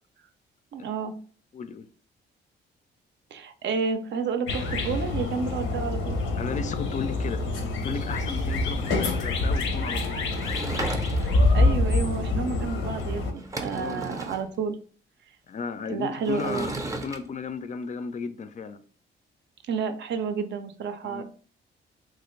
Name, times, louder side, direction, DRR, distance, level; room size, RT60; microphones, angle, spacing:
voice 1, 0.7-1.1 3.3-6.2 11.2-14.8 15.9-16.7 19.7-21.2, right 6 dB, 65° right, 0.5 m, -30 dB
voice 2, 1.5-1.9 6.4-10.2 13.7-14.2 15.5-18.8 21.0-21.2, left 5 dB, 40° left, 0.4 m, -35 dB
sound 1, 4.5-13.3, left 2 dB, 80° left, 0.7 m, -26 dB
Sliding door / Wood, 10.3-11.5 13.0-13.1 13.3-14.5 16.2-17.2, right 2 dB, 15° right, 0.5 m, -35 dB
3.1 x 2.5 x 3.0 m
cardioid pair, 110°, 20 cm